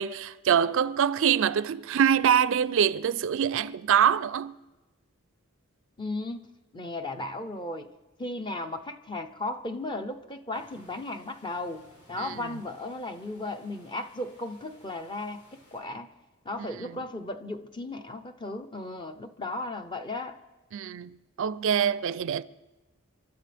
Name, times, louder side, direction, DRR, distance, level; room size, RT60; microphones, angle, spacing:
voice 1, 0.0-4.5 12.2-12.3 20.7-22.4, right 8 dB, 65° right, 0.4 m, -24 dB
voice 2, 6.0-6.5 6.7-7.9 8.2-16.1 16.4-20.4, left 2 dB, 20° left, 0.8 m, -35 dB
sound 1, 10.5-15.8, equal, 60° left, 7.3 m, -58 dB
28.0 x 12.5 x 3.4 m
head